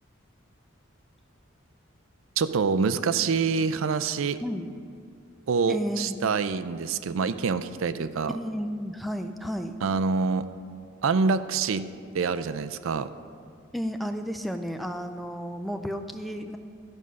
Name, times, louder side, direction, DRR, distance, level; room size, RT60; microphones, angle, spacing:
voice 1, 2.4-4.4 5.5-8.4 9.8-10.5 11.0-11.8 12.1-13.1, right 5 dB, 75° right, 12 dB, 0.4 m, -26 dB
voice 2, 4.4-4.7 5.7-6.2 8.3-9.8 13.7-16.6, equal, ahead, 7 dB, 0.3 m, -32 dB
13.0 x 5.4 x 6.3 m, 2.4 s
head